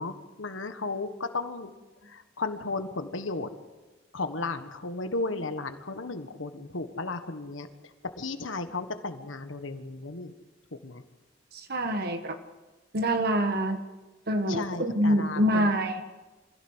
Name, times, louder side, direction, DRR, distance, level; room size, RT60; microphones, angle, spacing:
voice 1, 0.0-1.7 2.1-3.5 4.1-7.7 8.2-10.3 10.8-11.0 14.5-15.7, left 3 dB, 80° left, 8 dB, 1.5 m, -34 dB
voice 2, 11.7-12.3 12.9-13.8 14.3-16.0, equal, 55° right, 6 dB, 1.6 m, -25 dB
25.0 x 16.5 x 8.1 m, 1.2 s
head